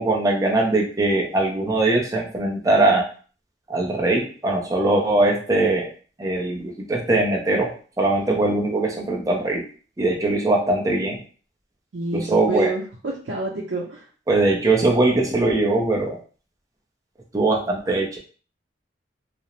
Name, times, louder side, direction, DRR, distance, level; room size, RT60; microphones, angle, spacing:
voice 1, 0.0-3.1 3.7-5.9 6.2-9.6 10.0-11.2 12.1-12.7 14.3-16.2 17.3-18.2, right 2 dB, 20° right, 0 dB, 0.5 m, -21 dB
voice 2, 11.9-14.0, right 2 dB, 80° right, -4 dB, 0.6 m, -28 dB
2.4 x 2.0 x 2.9 m, 0.39 s
head